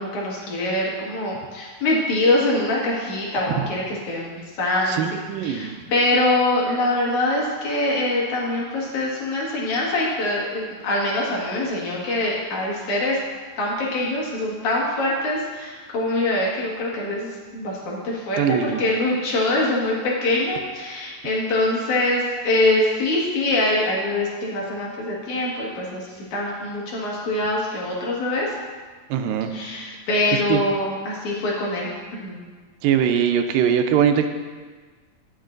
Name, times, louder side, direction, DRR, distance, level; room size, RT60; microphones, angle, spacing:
voice 1, 0.0-5.0 5.4-13.2 13.6-28.5 29.5-31.9 32.2-32.4, left 2 dB, 60° left, -5 dB, 3.0 m, -24 dB
voice 2, 4.9-5.8 18.4-18.8 29.1-29.5 30.5-30.6 32.8-34.3, right 8 dB, 90° right, 6 dB, 2.4 m, -21 dB
18.0 x 6.5 x 2.6 m, 1.4 s
omnidirectional pair, 3.9 m